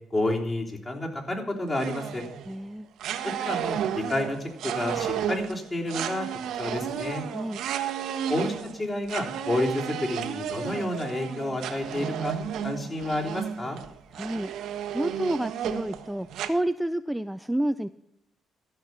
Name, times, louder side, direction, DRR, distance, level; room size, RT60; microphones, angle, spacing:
voice 1, 0.1-2.2 3.2-4.4 4.6-6.3 6.6-7.2 8.3-12.3 12.6-13.8, left 1 dB, 30° left, 0 dB, 3.4 m, -30 dB
sound 1, 1.7-2.6 3.0-16.5, right 9 dB, 80° right, 1.0 m, -33 dB
voice 2, 2.5-2.9 7.3-7.6 14.1-17.9, right 1 dB, 5° right, 11 dB, 0.4 m, -30 dB
13.5 x 5.8 x 8.3 m, 0.79 s
cardioid pair, 90°, 0 cm